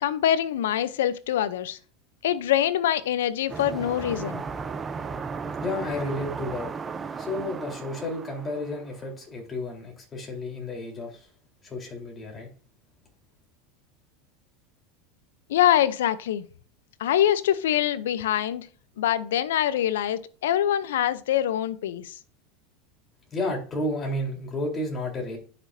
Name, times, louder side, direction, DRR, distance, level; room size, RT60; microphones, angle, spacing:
voice 1, 0.0-1.8 2.2-4.4 15.5-16.5 17.0-18.7 19.0-22.1, left 11 dB, 90° left, 0.6 m, -24 dB
sound 1, 3.5-9.0, right 5 dB, 25° right, 0.7 m, -35 dB
voice 2, 5.6-6.7 7.2-11.3 11.6-12.5 23.3-25.4, left 1 dB, 25° left, 3.8 m, -32 dB
11.0 x 6.2 x 2.7 m
supercardioid pair, 115°, 0 cm